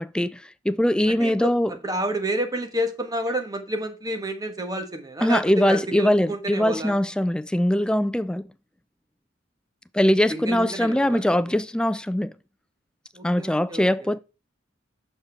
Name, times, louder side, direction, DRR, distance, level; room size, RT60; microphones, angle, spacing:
voice 1, 0.0-1.7 5.2-8.5 9.9-12.3 13.2-14.2, left 1 dB, 5° left, 0.3 m, -22 dB
voice 2, 1.1-1.5 1.8-7.0 10.3-11.2 13.1-14.1, right 1 dB, 20° right, 1.3 m, -29 dB
6.6 x 5.6 x 4.4 m
head